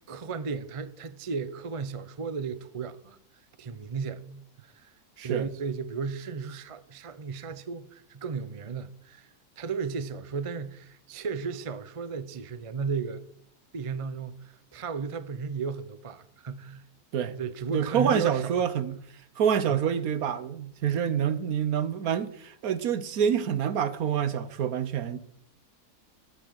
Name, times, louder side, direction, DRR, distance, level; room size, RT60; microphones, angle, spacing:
voice 1, 0.1-3.2 3.6-4.9 5.2-9.3 9.6-13.2 13.7-16.8 17.3-18.6 19.7-19.8, right 5 dB, 40° right, 0.5 m, -34 dB
voice 2, 17.7-19.0 19.4-25.2, right 8 dB, 65° right, 1.2 m, -27 dB
13.5 x 7.0 x 7.6 m
omnidirectional pair, 1.7 m